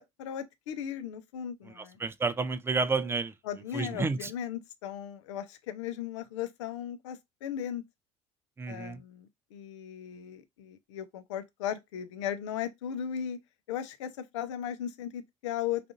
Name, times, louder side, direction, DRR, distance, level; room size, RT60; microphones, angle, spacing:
voice 1, 0.0-2.0 3.4-7.8 8.7-13.4 13.7-15.9, left 9 dB, 70° left, 0.5 m, -37 dB
voice 2, 1.8-3.3 3.7-4.3 8.6-9.0, right 4 dB, 15° right, 0.4 m, -30 dB
3.6 x 2.5 x 2.5 m
figure-of-eight pair, 60°, 16 cm